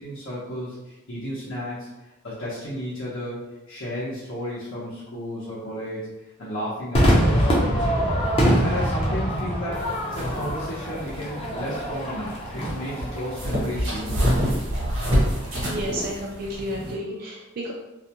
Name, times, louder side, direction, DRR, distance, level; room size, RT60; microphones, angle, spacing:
voice 1, 0.0-1.9 2.2-3.4 3.7-6.0 6.4-8.1 8.4-9.8 10.1-14.7, equal, 75° left, -9 dB, 0.7 m, -33 dB
Crowd / Fireworks, 6.9-13.5, equal, 30° left, 0.5 m, -24 dB
sound 1, 9.7-16.9, equal, 75° right, 1.0 m, -27 dB
voice 2, 15.6-17.7, equal, 45° right, -3 dB, 0.3 m, -31 dB
2.4 x 2.1 x 2.8 m, 1.0 s
head